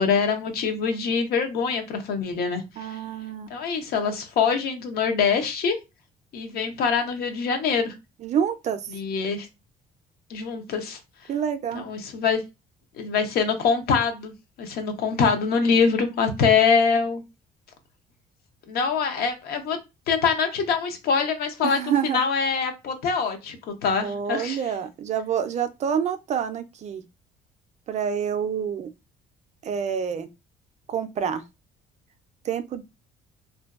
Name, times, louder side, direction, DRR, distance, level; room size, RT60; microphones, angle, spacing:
voice 1, 0.0-3.0 3.5-5.8 6.3-7.9 8.9-9.5 10.3-11.0 11.7-12.4 13.0-14.3 14.6-17.2 18.7-19.8 20.1-24.6, left 5 dB, 65° left, 0.7 m, -24 dB
voice 2, 2.8-3.5 8.2-8.9 11.3-11.9 21.6-22.2 24.0-27.0 27.9-28.9 29.6-30.3 30.9-31.4 32.4-32.8, right 8 dB, 45° right, 0.4 m, -27 dB
2.5 x 2.2 x 2.4 m
cardioid pair, 110°, 17 cm